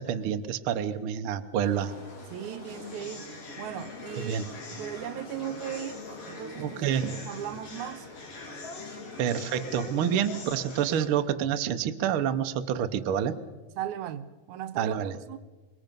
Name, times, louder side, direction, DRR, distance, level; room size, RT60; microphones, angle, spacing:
voice 1, 0.0-1.9 4.2-4.5 6.6-7.2 9.2-13.4 14.8-15.2, right 9 dB, 65° right, 1.4 m, -28 dB
sound 1, 1.6-11.1, left 3 dB, 55° left, 3.8 m, -42 dB
voice 2, 2.3-3.3 3.6-8.1 13.8-14.9 15.3-15.4, right 10 dB, 80° right, 2.2 m, -37 dB
24.5 x 22.0 x 5.3 m
omnidirectional pair, 3.4 m